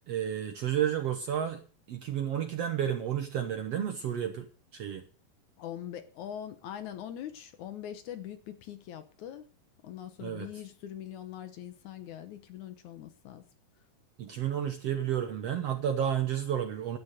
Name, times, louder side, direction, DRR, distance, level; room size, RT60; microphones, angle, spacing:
voice 1, 0.1-1.6 1.9-4.5 4.7-5.0 10.2-10.5 14.2-17.0, right 9 dB, 65° right, 1.7 m, -31 dB
voice 2, 5.6-9.5 9.8-13.4, left 10 dB, 70° left, 2.2 m, -42 dB
11.5 x 9.5 x 6.6 m
omnidirectional pair, 4.0 m